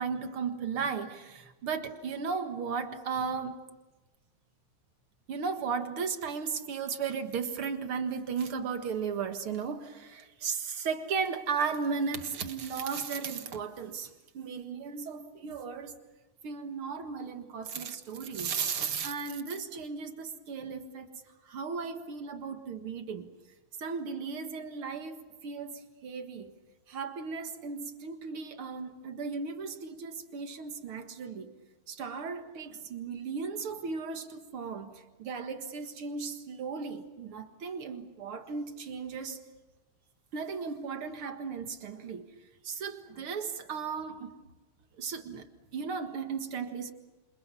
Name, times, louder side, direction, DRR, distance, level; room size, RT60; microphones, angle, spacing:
voice 1, 0.0-3.6 5.3-16.0 16.4-21.1 21.5-23.3 23.8-26.5 26.9-31.5 31.9-39.4 40.3-42.3 42.6-44.3 45.0-45.5 45.7-46.9, right 5 dB, 50° right, 2.0 m, -35 dB
27.5 x 27.5 x 7.0 m
omnidirectional pair, 3.9 m